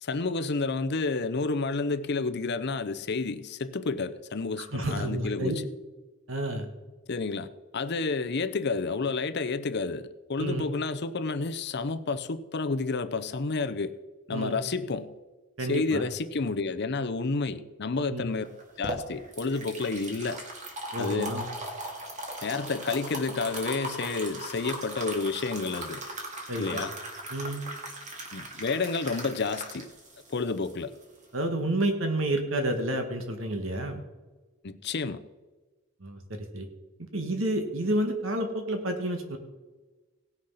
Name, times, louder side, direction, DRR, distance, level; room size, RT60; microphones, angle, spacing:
voice 1, 0.0-5.6 7.1-13.9 14.3-15.1 15.6-18.5 18.8-20.4 21.0-21.3 22.4-26.0 26.6-26.9 28.3-29.9 30.3-30.9 34.6-35.2, left 4 dB, 55° left, 0.7 m, -30 dB
voice 2, 4.6-5.5 6.3-6.7 10.4-10.6 14.3-14.6 15.6-16.0 18.1-18.2 20.9-21.4 26.5-26.8 27.3-27.6 31.3-34.0 36.0-36.7 37.1-39.4, right 1 dB, 65° right, 1.6 m, -30 dB
sound 1, 18.4-31.4, right 1 dB, 35° right, 2.2 m, -39 dB
17.5 x 6.5 x 5.6 m
head